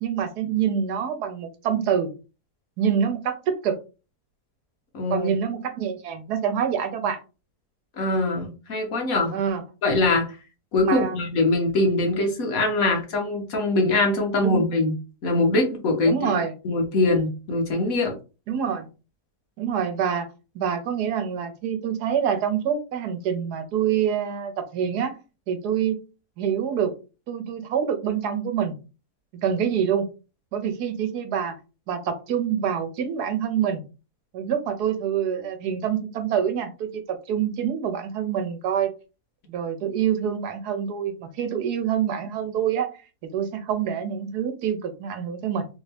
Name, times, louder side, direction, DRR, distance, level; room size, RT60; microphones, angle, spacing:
voice 1, 0.0-2.1 2.8-3.8 5.1-7.2 9.3-9.6 10.8-11.2 14.4-14.6 16.1-16.5 18.5-18.9 19.6-20.3 20.5-25.1 25.5-26.0 26.4-26.9 27.3-28.8 29.4-30.1 30.5-31.6 31.9-33.8 34.3-38.9 39.5-42.9 43.2-45.7, right 8 dB, 85° right, 8 dB, 1.3 m, -26 dB
voice 2, 4.9-5.3 8.0-9.4 9.8-10.4 10.7-18.2, left 2 dB, 65° left, 2 dB, 1.3 m, -23 dB
3.5 x 2.7 x 3.3 m, 0.31 s
omnidirectional pair, 1.7 m